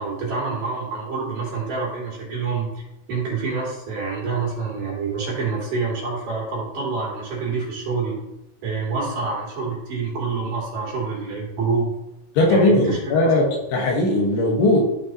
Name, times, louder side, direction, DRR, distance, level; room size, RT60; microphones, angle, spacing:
voice 1, 0.0-2.8 3.1-8.2 8.6-11.9 12.5-13.5, right 4 dB, 55° right, -5 dB, 4.0 m, -27 dB
voice 2, 12.4-13.4 13.7-14.9, left 2 dB, 80° left, -1 dB, 3.6 m, -18 dB
13.5 x 5.2 x 3.0 m, 0.89 s
omnidirectional pair, 4.7 m